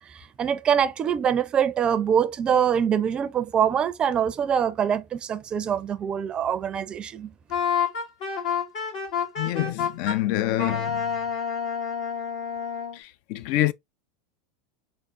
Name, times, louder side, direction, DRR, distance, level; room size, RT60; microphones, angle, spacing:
voice 1, 0.1-7.3, right 8 dB, 30° right, 0.4 m, -24 dB
Wind instrument woodwind instrument, 7.5-10.2 10.6-13.0, left 7 dB, 75° left, 2.0 m, -28 dB
voice 2, 9.4-11.1 12.9-13.7, left 15 dB, 60° left, 0.3 m, -26 dB
3.6 x 3.5 x 2.5 m
hypercardioid pair, 95°, 3 cm